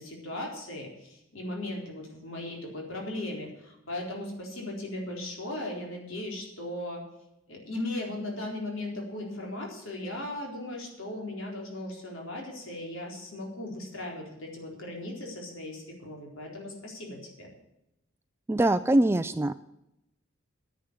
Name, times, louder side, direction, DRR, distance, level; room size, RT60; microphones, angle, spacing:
voice 1, 0.0-7.0 7.5-17.5, left 1 dB, 75° left, -1 dB, 4.1 m, -37 dB
voice 2, 18.5-19.6, right 1 dB, 10° right, 11 dB, 0.3 m, -23 dB
10.0 x 8.3 x 8.3 m, 0.87 s
head